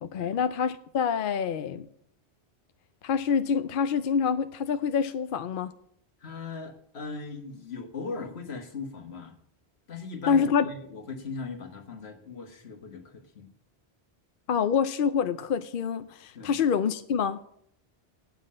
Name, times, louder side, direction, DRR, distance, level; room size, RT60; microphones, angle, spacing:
voice 1, 0.0-1.9 3.0-5.7 10.3-10.7 14.5-17.4, left 6 dB, 60° left, 11 dB, 0.7 m, -26 dB
voice 2, 6.2-9.4 9.9-13.5 16.3-16.6, left 4 dB, 80° left, 6 dB, 1.6 m, -39 dB
9.0 x 7.4 x 8.6 m, 0.67 s
omnidirectional pair, 1.1 m